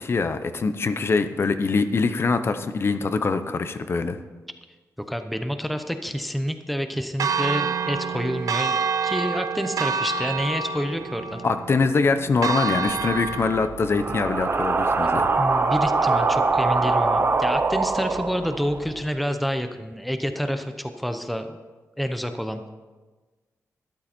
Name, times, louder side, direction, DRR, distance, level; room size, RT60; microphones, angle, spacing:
voice 1, 0.0-4.2 11.4-15.3, left 4 dB, 45° left, 10 dB, 0.8 m, -23 dB
voice 2, 5.1-8.7 9.0-11.4 15.4-21.6 22.0-22.7, equal, ahead, 7 dB, 0.8 m, -28 dB
Church bell, 7.2-13.7, right 5 dB, 80° right, 0.5 m, -27 dB
sound 1, 12.9-19.0, right 3 dB, 40° right, 0.8 m, -23 dB
13.0 x 11.5 x 4.4 m, 1.3 s
wide cardioid pair, 120°, 6 cm